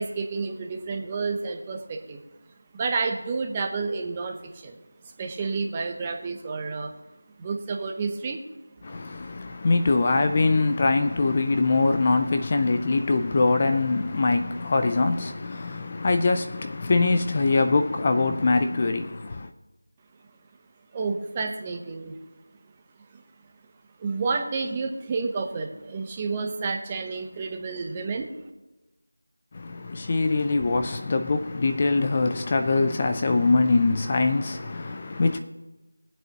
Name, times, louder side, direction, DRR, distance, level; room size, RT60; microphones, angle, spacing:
voice 1, 0.0-2.2 2.7-4.8 5.2-6.9 7.4-8.4 20.9-22.2 23.1-23.2 24.0-28.3, right 4 dB, 15° right, 0.8 m, -30 dB
voice 2, 8.8-19.5 29.5-35.4, left 3 dB, 25° left, 0.4 m, -23 dB
21.0 x 7.8 x 2.9 m
figure-of-eight pair, 170°, 0 cm